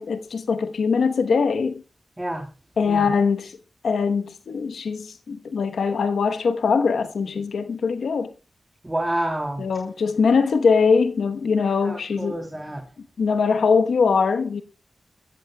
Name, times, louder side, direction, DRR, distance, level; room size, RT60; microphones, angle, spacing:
voice 1, 0.0-1.8 2.8-3.5 3.8-8.3 9.6-12.4 13.2-14.6, left 5 dB, 85° left, 1.0 m, -22 dB
voice 2, 2.2-2.5 2.8-3.1 8.8-9.6 11.8-12.8, right 1 dB, 20° right, 3.1 m, -28 dB
25.0 x 14.0 x 2.3 m
cardioid pair, 45°, 0 cm